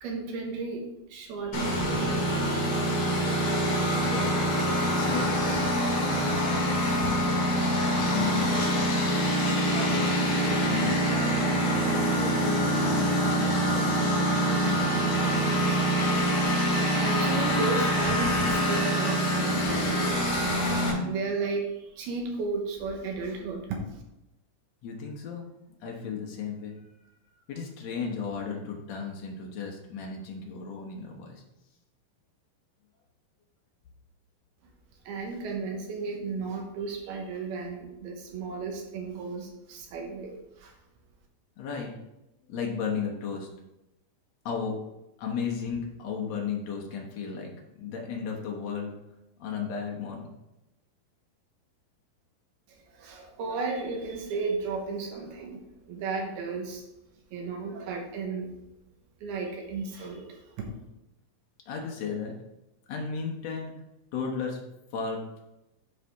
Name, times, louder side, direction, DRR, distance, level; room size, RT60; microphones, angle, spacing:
voice 1, 0.0-2.4 16.7-20.3 21.0-23.8 35.1-40.7 52.9-56.8 57.3-58.5 59.2-60.7, right 4 dB, 75° right, 1 dB, 2.9 m, -34 dB
Engine, 1.5-20.9, equal, 55° left, 3.4 m, -25 dB
voice 2, 3.9-4.4 4.9-5.4 6.1-7.5 7.9-9.2 9.7-10.1 10.4-11.5 12.1-14.3 14.6-15.2 24.8-25.5 25.8-26.7 27.5-31.4 41.6-41.9 42.5-43.5 44.4-44.8 45.2-47.5 47.8-48.9 49.4-50.3 61.7-62.3 62.9-63.7 64.1-64.6 64.9-65.4, left 6 dB, 75° left, 0 dB, 1.5 m, -34 dB
11.5 x 4.2 x 3.5 m, 0.92 s
omnidirectional pair, 4.6 m